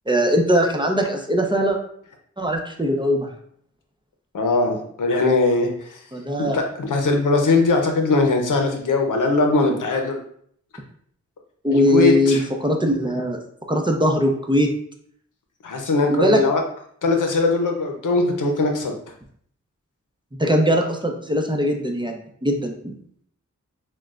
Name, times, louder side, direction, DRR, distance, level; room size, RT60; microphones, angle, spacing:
voice 1, 0.1-1.8 2.4-3.3 6.1-6.6 11.6-13.4 13.7-14.7 16.1-16.4 20.4-22.9, equal, 15° right, 2 dB, 0.7 m, -20 dB
voice 2, 4.3-6.0 6.4-10.2 11.7-12.4 15.6-16.6 17.0-18.9, left 3 dB, 85° left, 3 dB, 0.6 m, -20 dB
6.1 x 2.2 x 2.4 m, 0.64 s
cardioid pair, 45°, 30 cm